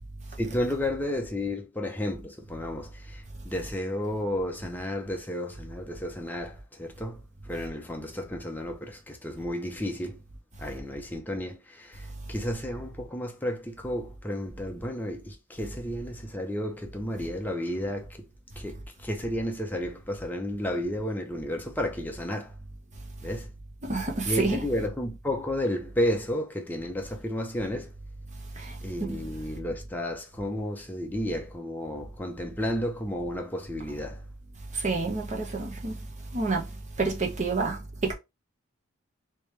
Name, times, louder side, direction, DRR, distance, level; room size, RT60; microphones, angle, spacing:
voice 1, 0.4-10.2 10.6-18.3 18.6-22.5 23.2-23.5 24.2-27.9 28.8-34.2, left 1 dB, 10° left, 0.7 m, -32 dB
voice 2, 23.8-24.7 28.6-29.2 34.7-35.9 36.3-36.7 37.0-38.1, right 3 dB, 35° right, 1.0 m, -29 dB
3.3 x 3.1 x 3.3 m
head